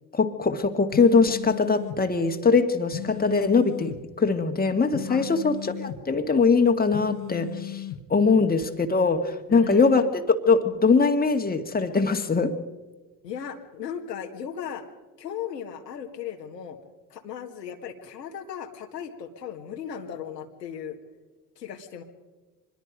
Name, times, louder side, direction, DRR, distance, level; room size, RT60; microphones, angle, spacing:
voice 1, 0.1-12.6, left 4 dB, 20° left, 6 dB, 1.9 m, -22 dB
Cell Phone Vibrate (High Quality), 0.9-2.0 2.9-4.0 4.9-6.0 6.9-8.0, left 12 dB, 55° left, 1.8 m, -36 dB
voice 2, 8.2-8.5 9.5-10.1 13.2-14.8 15.2-16.8 17.1-21.0 21.6-22.0, left 8 dB, 90° left, 3 dB, 2.0 m, -36 dB
25.0 x 21.5 x 5.1 m, 1.2 s
hypercardioid pair, 60°, 48 cm